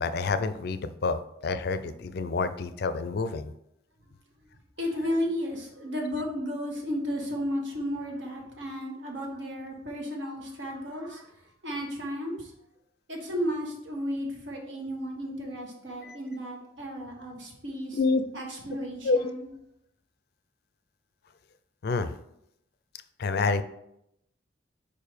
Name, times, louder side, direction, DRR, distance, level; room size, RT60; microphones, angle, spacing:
voice 1, 0.0-3.5 16.0-16.2 17.9-18.2 19.0-19.3 21.8-22.1 23.2-23.6, left 4 dB, 55° left, 12 dB, 0.4 m, -28 dB
voice 2, 4.8-11.2 11.6-12.5 13.1-18.0 18.3-19.5, equal, 70° right, 0 dB, 1.5 m, -33 dB
4.9 x 4.7 x 5.0 m, 0.79 s
head